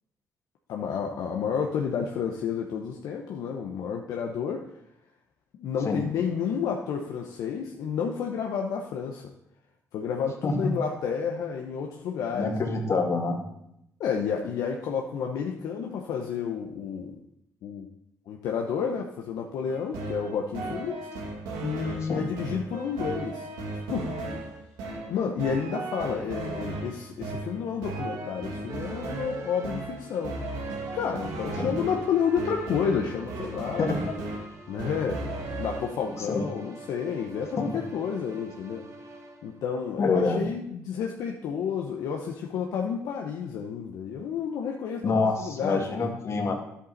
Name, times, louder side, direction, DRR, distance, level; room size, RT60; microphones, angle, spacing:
voice 1, 0.7-4.6 5.6-9.3 9.9-12.6 12.9-13.0 14.0-17.2 17.6-17.9 18.3-21.1 21.6-23.5 23.9-24.1 25.1-30.4 30.9-33.9 34.7-35.2 35.6-38.8 39.4-46.2, left 6 dB, 75° left, 1 dB, 0.9 m, -30 dB
voice 2, 12.3-13.4 22.1-22.2 31.6-31.7 33.8-34.1 36.3-36.4 37.6-37.7 40.0-40.4 45.0-46.5, left 3 dB, 50° left, 2 dB, 2.2 m, -26 dB
sound 1, 19.7-35.8, right 2 dB, 90° right, 1.6 m, -36 dB
sound 2, 28.7-40.5, right 2 dB, 50° right, 1.6 m, -47 dB
10.5 x 8.2 x 4.1 m, 0.79 s
supercardioid pair, 70°, 6 cm